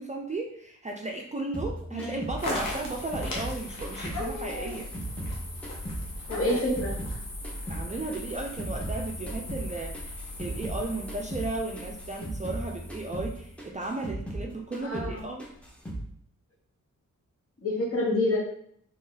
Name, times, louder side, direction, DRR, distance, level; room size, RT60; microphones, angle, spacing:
voice 1, 0.0-4.9 7.7-15.5, right 2 dB, 25° right, 0 dB, 0.4 m, -35 dB
sound 1, 1.5-4.2 4.5-7.2 7.4-10.8 11.1-11.5 11.8-14.5 14.7-15.1 15.4-16.1, right 1 dB, 5° left, 0.8 m, -37 dB
sound 2, 2.4-13.6, left 1 dB, 85° left, 1.0 m, -38 dB
sound 3, 3.0-3.2 3.5-5.3 6.2-6.8 11.0-11.3 12.5-12.6 14.7-14.8 15.7-15.9, left 1 dB, 65° left, 0.8 m, -39 dB
voice 2, 6.3-6.9 14.8-15.2 17.6-18.4, left 1 dB, 45° left, -3 dB, 1.3 m, -27 dB
3.0 x 2.6 x 3.9 m, 0.67 s
wide cardioid pair, 100°, 32 cm